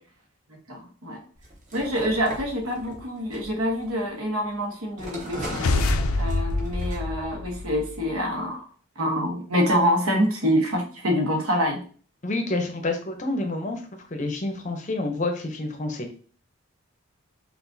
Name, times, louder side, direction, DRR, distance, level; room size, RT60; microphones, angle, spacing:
voice 1, 0.7-1.2 1.7-5.6 6.2-8.7 9.0-11.8, equal, 80° right, 1 dB, 1.2 m, -26 dB
sound 1, 1.4-4.5 5.0-7.0, equal, 35° right, 0.9 m, -39 dB
sound 2, 5.3-8.1, left 2 dB, 75° left, 0.5 m, -26 dB
voice 2, 12.2-13.8 14.1-16.2, left 2 dB, 35° left, 4 dB, 0.6 m, -28 dB
5.8 x 2.5 x 2.7 m, 0.42 s
head